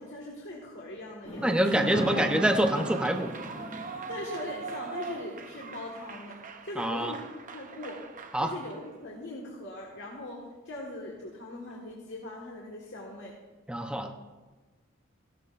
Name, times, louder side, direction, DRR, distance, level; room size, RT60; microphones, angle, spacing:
voice 1, 0.0-1.8 4.1-7.3 7.5-8.0 8.4-13.3, left 2 dB, 60° left, -3 dB, 1.7 m, -41 dB
Fireworks, 1.2-5.7, equal, 30° left, 1.7 m, -38 dB
voice 2, 1.4-3.3 6.8-7.2 8.3-8.5 13.7-14.1, right 1 dB, 5° right, 3 dB, 0.8 m, -26 dB
Clapping / Cheering / Applause, 1.5-8.9, right 4 dB, 40° right, 0.7 m, -41 dB
15.5 x 12.0 x 2.5 m, 1.2 s
head